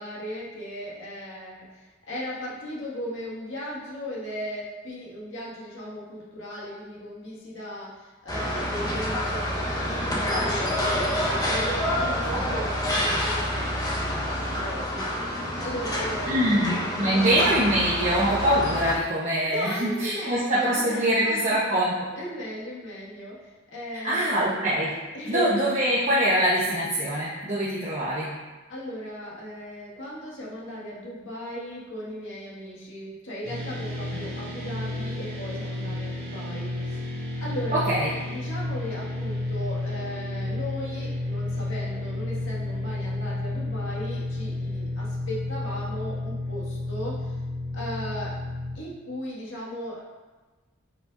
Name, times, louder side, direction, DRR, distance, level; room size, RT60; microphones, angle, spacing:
voice 1, 0.0-1.8 2.1-13.5 13.9-15.3 15.6-17.3 19.5-21.8 22.2-24.3 25.1-25.7 28.7-37.9 38.3-47.3 47.7-48.4 48.7-50.0, equal, 85° left, -6 dB, 1.9 m, -37 dB
sound 1, 8.3-19.0, equal, 20° left, 1.1 m, -27 dB
voice 2, 16.3-16.7 17.0-22.1 24.0-24.9 25.3-28.3 37.9-38.1, right 1 dB, 40° right, -8 dB, 1.0 m, -23 dB
sound 2, 33.4-48.7, left 2 dB, 55° right, 1.9 m, -31 dB
8.1 x 5.2 x 2.6 m, 1.2 s
head